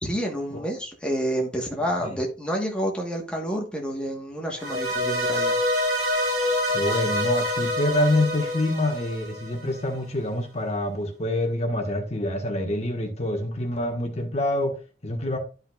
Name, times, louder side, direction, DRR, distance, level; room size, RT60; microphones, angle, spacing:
voice 1, 0.0-5.6, equal, 5° left, 1.3 m, -29 dB
sound 1, 4.6-9.8, left 1 dB, 65° right, 3.7 m, -26 dB
voice 2, 6.7-15.4, left 1 dB, 35° left, 1.5 m, -26 dB
12.0 x 5.6 x 2.4 m
head